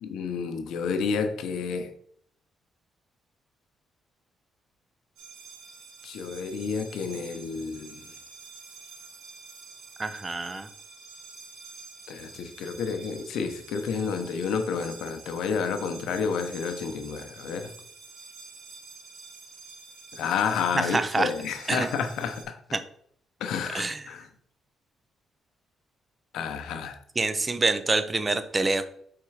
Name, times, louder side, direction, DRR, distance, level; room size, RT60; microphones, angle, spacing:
voice 1, 0.0-1.9 6.0-8.1 12.1-17.7 20.1-22.6 23.4-24.2 26.3-27.0, left 6 dB, 80° left, 0.8 m, -30 dB
sound 1, 5.2-22.4, right 4 dB, 80° right, 1.8 m, -47 dB
voice 2, 10.0-10.7 20.7-21.3 21.7-21.9 22.7-22.8 23.7-24.1 27.2-28.8, right 3 dB, 25° right, 0.6 m, -26 dB
6.0 x 3.8 x 4.8 m
cardioid pair, 90°, 0 cm